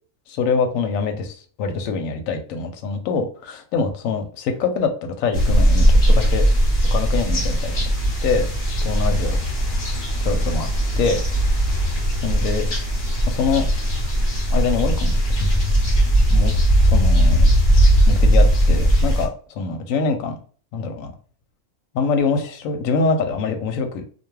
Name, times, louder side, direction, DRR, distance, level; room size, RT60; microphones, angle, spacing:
voice 1, 0.3-6.5 6.9-7.7 8.2-8.5 8.8-9.4 10.2-10.7 11.0-11.2 12.2-12.7 13.3-13.6 14.5-15.6 16.0-16.1 16.3-16.5 16.8-17.5 18.1-20.4 20.7-21.1 21.9-24.0, left 5 dB, 70° left, 6 dB, 0.9 m, -24 dB
sound 1, 5.3-19.2, right 1 dB, 40° left, 1.0 m, -18 dB
2.4 x 2.2 x 3.1 m, 0.42 s
omnidirectional pair, 1.5 m